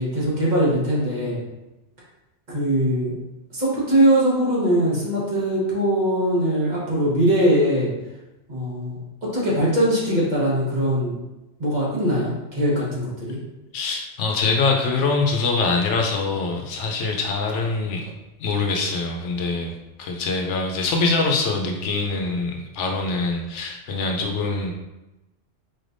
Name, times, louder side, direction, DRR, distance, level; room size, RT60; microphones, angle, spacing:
voice 1, 0.0-1.4 2.5-3.1 3.5-7.9 8.5-11.1 11.6-13.4, right 1 dB, 40° right, -6 dB, 1.2 m, -21 dB
voice 2, 13.7-18.1 18.4-24.7, left 3 dB, 75° left, 2 dB, 0.9 m, -24 dB
4.2 x 3.3 x 2.5 m, 1.0 s
omnidirectional pair, 1.3 m